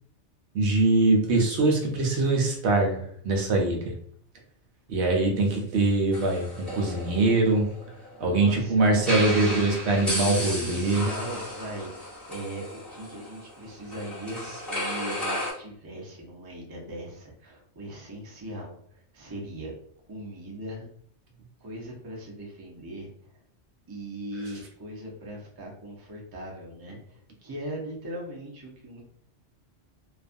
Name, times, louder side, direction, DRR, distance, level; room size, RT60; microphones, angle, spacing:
voice 1, 0.5-4.0 4.9-7.7 8.2-11.1, right 2 dB, 70° right, 1 dB, 0.8 m, -23 dB
sound 1, 6.1-8.2 9.0-15.5, left 1 dB, ahead, 0.9 m, -34 dB
voice 2, 8.2-9.7 10.1-19.7 20.1-20.9 21.6-23.1 23.9-27.1 27.4-29.0, right 1 dB, 30° right, -1 dB, 0.4 m, -39 dB
2.4 x 2.2 x 2.5 m, 0.63 s
omnidirectional pair, 1.2 m